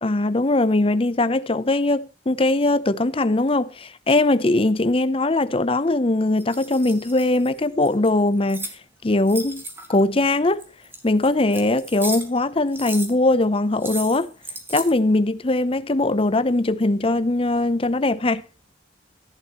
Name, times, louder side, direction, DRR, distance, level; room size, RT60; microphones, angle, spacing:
voice 1, 0.0-8.7 9.0-9.6 9.9-10.6 11.0-14.3 14.7-18.4, left 2 dB, 30° left, 0.7 m, -20 dB
sound 1, 6.4-8.8 9.2-10.0 10.6-12.4 12.7-13.1 13.8-14.9, right 2 dB, 10° right, 2.1 m, -35 dB
14.5 x 11.0 x 3.1 m
head